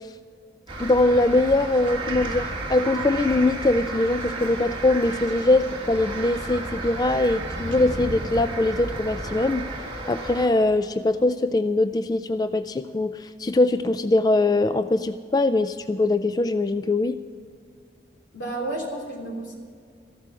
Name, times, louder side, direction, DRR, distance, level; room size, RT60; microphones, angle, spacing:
sound 1, 0.7-10.5, right 2 dB, 25° right, 1.8 m, -32 dB
voice 1, 0.8-9.7 10.1-17.2, left 2 dB, 20° left, 11 dB, 0.3 m, -22 dB
voice 2, 18.3-19.5, right 2 dB, 85° left, 1 dB, 3.4 m, -31 dB
14.5 x 12.5 x 6.2 m, 2.1 s
head